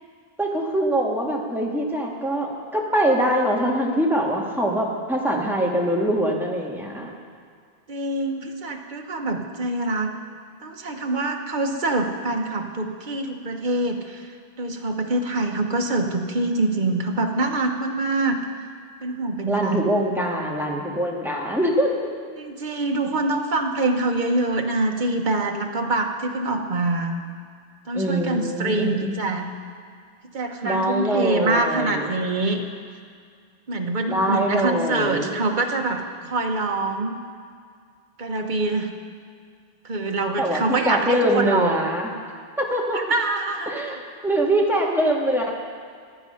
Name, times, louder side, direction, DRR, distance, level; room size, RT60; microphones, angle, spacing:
voice 1, 0.4-7.1 19.5-21.9 27.9-29.1 30.6-32.1 34.1-35.3 40.4-42.1 42.6-43.0 43.7-45.5, right 1 dB, ahead, -2 dB, 1.7 m, -23 dB
voice 2, 7.9-10.1 10.6-18.4 19.0-19.8 22.4-27.2 27.9-29.4 30.3-32.6 33.7-37.2 38.2-38.9 39.8-41.8 42.9-43.9, right 2 dB, 50° right, 3 dB, 1.3 m, -25 dB
14.5 x 11.0 x 5.6 m, 2.1 s
omnidirectional pair, 1.0 m